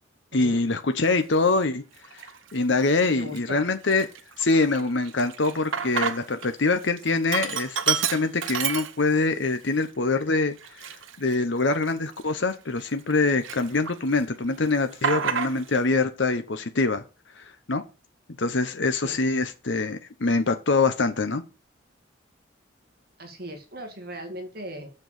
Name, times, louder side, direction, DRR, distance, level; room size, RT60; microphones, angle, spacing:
voice 1, 0.3-1.8 2.5-4.1 4.4-10.5 11.2-17.0 17.4-17.5 17.7-17.8 18.4-21.4, left 3 dB, 70° left, 0.9 m, -24 dB
Sink (filling or washing), 1.2-1.4 2.0-2.6 3.0-3.1 3.3-6.5 6.8-9.4 9.8-9.9 10.6-13.1 13.4-14.2 14.5-15.8, right 7 dB, 85° right, 0.9 m, -30 dB
voice 2, 3.2-3.6 19.0-19.2 23.2-24.9, equal, 50° right, 2.1 m, -38 dB
7.0 x 6.5 x 7.1 m
head